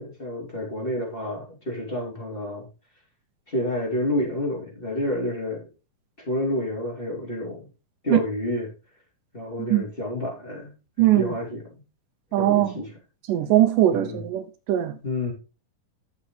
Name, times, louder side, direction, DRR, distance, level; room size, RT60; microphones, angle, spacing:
voice 1, 0.0-2.7 3.5-5.7 6.2-7.7 8.0-8.7 9.3-11.7 12.4-13.0 13.9-14.2 15.0-15.3, left 1 dB, 15° left, 3.3 m, -29 dB
voice 2, 11.0-11.3 12.3-12.7 13.3-14.9, right 13 dB, 80° right, 2.3 m, -20 dB
11.0 x 7.2 x 3.2 m
omnidirectional pair, 3.9 m